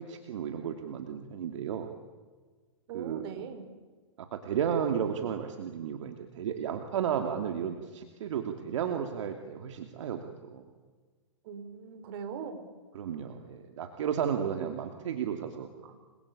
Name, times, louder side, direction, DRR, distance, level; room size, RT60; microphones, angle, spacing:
voice 1, 0.0-1.9 2.9-3.2 4.2-10.6 12.9-15.7, right 8 dB, 65° right, 5 dB, 2.8 m, -33 dB
voice 2, 2.9-3.6 11.4-12.6 15.8-15.9, right 6 dB, 50° right, 8 dB, 4.9 m, -41 dB
29.5 x 22.5 x 8.7 m, 1.4 s
hypercardioid pair, 135°, 17 cm